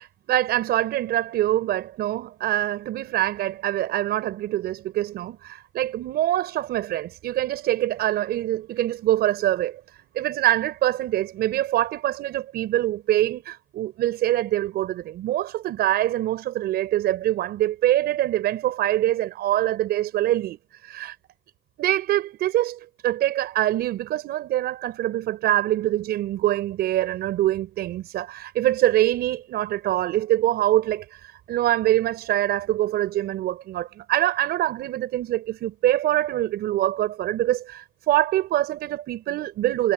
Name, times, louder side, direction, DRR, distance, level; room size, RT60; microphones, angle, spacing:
voice 1, 0.0-9.8 10.1-21.2 21.8-39.9, right 14 dB, 70° right, 5.4 m, -24 dB
cardioid pair, 110°, 17 cm